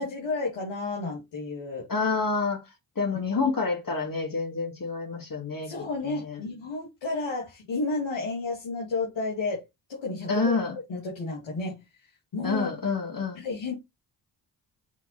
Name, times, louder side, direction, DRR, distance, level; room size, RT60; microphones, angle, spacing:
voice 1, 0.0-1.9 5.6-9.6 9.9-10.5 10.9-11.8 12.3-12.7 13.4-13.7, left 3 dB, 80° left, 2.3 m, -31 dB
voice 2, 1.9-2.6 3.0-6.4 10.3-10.8 12.4-13.4, left 4 dB, 45° left, 2.5 m, -28 dB
6.1 x 4.0 x 4.1 m
supercardioid pair, 45°, 46 cm